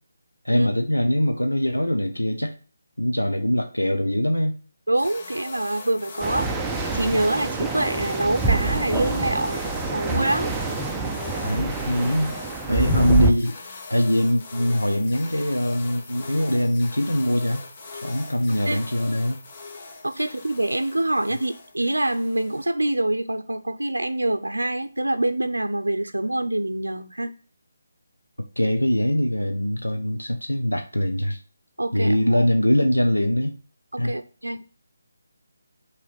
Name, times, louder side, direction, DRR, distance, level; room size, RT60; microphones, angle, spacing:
voice 1, 0.4-2.5 3.0-4.6 11.4-12.3 12.7-13.6 13.9-17.6 18.0-19.4 28.6-31.4 31.9-33.6 34.0-34.1, equal, 85° left, 4 dB, 0.9 m, -22 dB
sound 1, 4.9-22.9, left 3 dB, 35° left, 1.0 m, -40 dB
voice 2, 4.9-6.5 6.9-10.5 12.7-12.9 18.7-18.8 20.0-27.3 31.8-32.5 33.9-34.6, right 1 dB, 75° right, 9 dB, 0.6 m, -25 dB
sound 2, 6.2-13.3, right 3 dB, 10° right, 0.5 m, -26 dB
5.8 x 3.3 x 5.6 m, 0.39 s
figure-of-eight pair, 150°, 0 cm